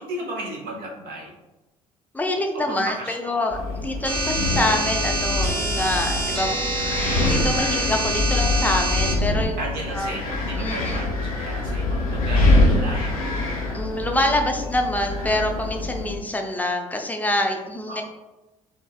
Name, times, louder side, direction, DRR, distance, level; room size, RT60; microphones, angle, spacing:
voice 1, 0.0-1.4 2.5-3.5 6.3-6.4 9.6-13.4 17.9-18.0, right 1 dB, 55° right, -2 dB, 0.6 m, -35 dB
voice 2, 2.1-6.6 6.9-9.6 9.9-10.1 10.6-11.0 13.7-18.0, left 1 dB, 10° left, 3 dB, 0.4 m, -26 dB
Wind, 3.5-16.1, left 2 dB, 80° left, 0.5 m, -24 dB
sound 1, 4.0-9.1, right 1 dB, 25° right, 1.1 m, -26 dB
4.5 x 2.0 x 2.3 m, 1.1 s
figure-of-eight pair, 50°, 18 cm